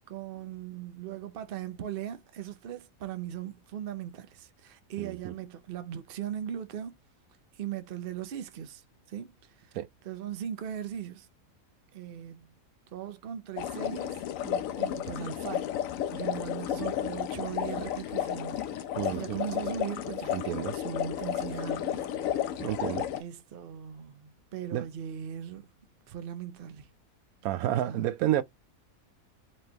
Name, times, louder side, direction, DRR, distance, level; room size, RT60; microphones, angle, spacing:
voice 1, 0.1-7.0 7.5-9.8 10.0-11.3 11.9-12.5 12.9-15.8 16.1-22.1 22.3-22.7 23.2-25.7 26.1-26.9 27.8-28.1, right 10 dB, 50° right, 0.8 m, -39 dB
voice 2, 5.0-5.3 9.7-9.9 19.0-19.4 20.3-20.7 22.6-23.1 24.7-24.9 27.4-28.4, right 12 dB, 85° right, 1.0 m, -30 dB
sound 1, 13.6-23.2, left 10 dB, 75° left, 1.0 m, -32 dB
4.4 x 3.2 x 2.8 m
omnidirectional pair, 1.5 m